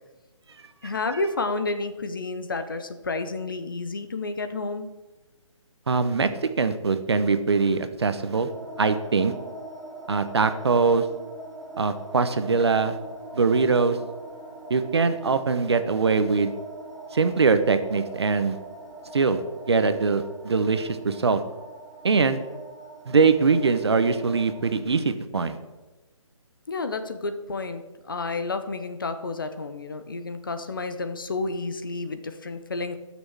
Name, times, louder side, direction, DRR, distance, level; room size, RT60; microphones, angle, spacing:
voice 1, 0.8-4.9 26.7-33.0, left 3 dB, 40° left, 9 dB, 0.8 m, -30 dB
voice 2, 5.9-6.3 6.6-8.5 8.8-9.3 10.1-11.1 11.8-13.0 13.3-14.0 14.7-16.5 17.1-18.6 19.1-19.4 19.7-21.4 22.0-22.4 23.1-25.6, right 4 dB, 55° right, 10 dB, 0.9 m, -22 dB
sound 1, 8.4-24.8, right 2 dB, 5° right, 0.6 m, -42 dB
11.5 x 6.3 x 7.1 m, 1.2 s
hypercardioid pair, 180°, 17 cm